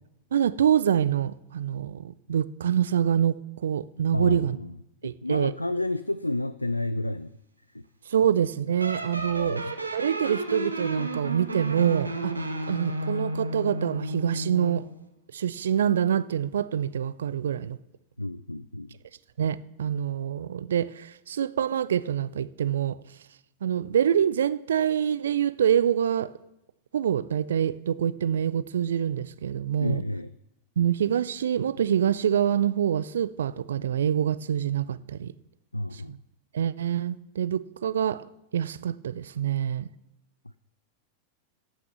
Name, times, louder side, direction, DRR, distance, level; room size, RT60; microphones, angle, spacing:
voice 1, 0.3-4.6 5.0-5.5 8.1-9.7 9.9-12.3 12.7-14.9 15.3-17.8 19.4-23.0 23.6-26.3 26.9-30.0 30.8-35.3 35.9-36.2 36.5-39.9, right 9 dB, 65° right, 0.4 m, -26 dB
voice 2, 4.1-4.7 5.0-7.3 7.7-7.8 9.4-9.6 18.2-18.9 29.8-30.3 35.7-36.2, left 1 dB, 85° left, 0.3 m, -30 dB
sound 1, 8.8-14.8, right 1 dB, 80° right, 1.1 m, -32 dB
13.5 x 6.1 x 6.8 m
figure-of-eight pair, 90°, 0 cm